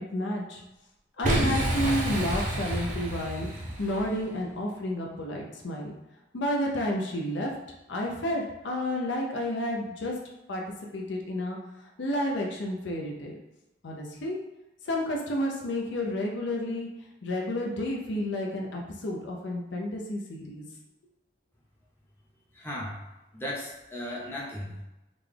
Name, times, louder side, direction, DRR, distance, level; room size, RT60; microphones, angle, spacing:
voice 1, 0.1-0.6 1.2-3.5 3.8-5.9 6.3-7.5 7.9-10.1 10.5-10.6 10.9-11.6 12.0-13.4 13.8-14.4 14.8-16.9 17.2-20.7, left 1 dB, 70° left, 0 dB, 0.6 m, -31 dB
Boom, 1.2-4.2, right 1 dB, 40° right, 0.6 m, -29 dB
voice 2, 22.5-23.0 23.3-24.8, left 1 dB, 10° left, -5 dB, 0.7 m, -36 dB
3.8 x 2.3 x 3.3 m, 0.97 s
head